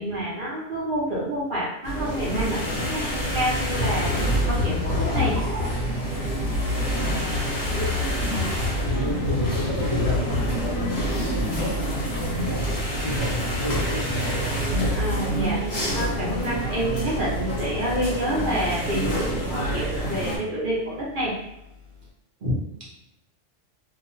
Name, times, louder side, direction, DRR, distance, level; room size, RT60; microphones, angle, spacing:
voice 1, 0.0-4.1 4.5-5.4 8.2-8.8 14.9-15.6 15.9-21.4 22.4-22.6, equal, 50° right, -6 dB, 0.8 m, -28 dB
sound 1, 1.8-20.4, equal, 55° left, 1.1 m, -26 dB
sound 2, 7.8-22.1, left 2 dB, 80° right, 1.1 m, -40 dB
voice 2, 8.8-14.1, equal, 30° left, -6 dB, 0.8 m, -30 dB
sound 3, 11.1-15.5, left 1 dB, 85° left, 1.0 m, -41 dB
2.7 x 2.1 x 3.0 m, 0.87 s
omnidirectional pair, 1.3 m